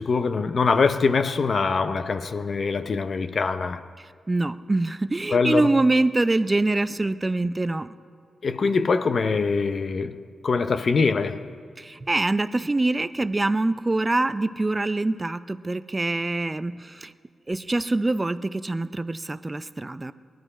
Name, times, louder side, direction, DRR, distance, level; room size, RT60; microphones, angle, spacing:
voice 1, 0.0-3.9 5.3-5.7 8.4-11.5, left 4 dB, 50° left, 0.6 m, -23 dB
voice 2, 4.3-7.9 11.8-17.1 17.5-20.1, right 2 dB, 20° right, 0.5 m, -24 dB
20.0 x 12.0 x 5.0 m
cardioid pair, 90°, 0 cm